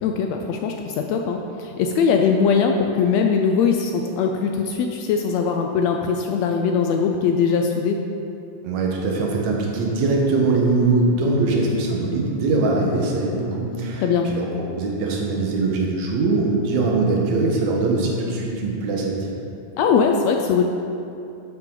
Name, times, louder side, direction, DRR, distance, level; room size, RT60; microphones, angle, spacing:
voice 1, 0.0-8.1 14.0-14.3 19.8-20.6, left 6 dB, 80° left, 3 dB, 1.6 m, -21 dB
voice 2, 8.6-19.3, right 3 dB, 65° right, -1 dB, 2.5 m, -22 dB
12.5 x 7.4 x 3.9 m, 2.7 s
omnidirectional pair, 3.6 m